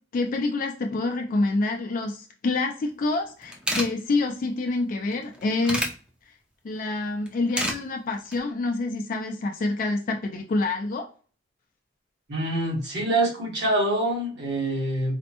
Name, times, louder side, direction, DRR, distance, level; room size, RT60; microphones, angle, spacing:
voice 1, 0.1-5.9 6.3-6.4 6.6-11.1, left 2 dB, 45° left, 3 dB, 0.3 m, -27 dB
sound 1, 3.1-3.2 3.4-3.9 5.1-5.9 7.3-7.8 8.1-8.4, equal, 5° right, 0.5 m, -28 dB
voice 2, 12.3-15.2, right 1 dB, 70° right, -2 dB, 1.4 m, -25 dB
4.2 x 2.1 x 2.8 m, 0.39 s
head